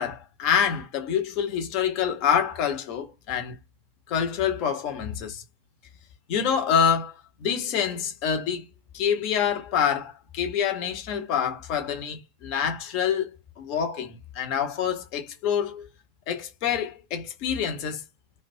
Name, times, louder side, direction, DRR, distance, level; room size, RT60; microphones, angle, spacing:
voice 1, 0.0-3.6 4.1-5.4 6.3-7.1 7.4-8.6 8.9-13.3 13.6-15.9 16.3-18.0, left 8 dB, 45° left, 0.7 m, -26 dB
2.2 x 2.2 x 2.6 m
figure-of-eight pair, 90°, 0 cm